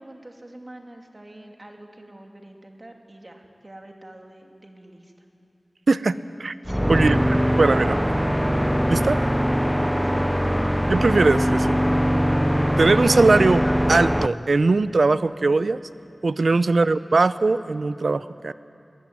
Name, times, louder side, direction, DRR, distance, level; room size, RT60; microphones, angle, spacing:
voice 1, 0.0-5.3 6.6-7.1 9.8-10.3 16.4-16.7, right 1 dB, 40° right, 2 dB, 2.8 m, -45 dB
voice 2, 5.9-6.5 6.9-8.0 8.9-9.2 10.9-11.8 12.8-13.6 13.9-15.8 16.2-18.5, right 3 dB, 85° right, 14 dB, 0.6 m, -20 dB
sound 1, 6.7-14.3, equal, ahead, 0.5 m, -21 dB
21.0 x 20.0 x 9.6 m, 2.6 s
wide cardioid pair, 60°, 0 cm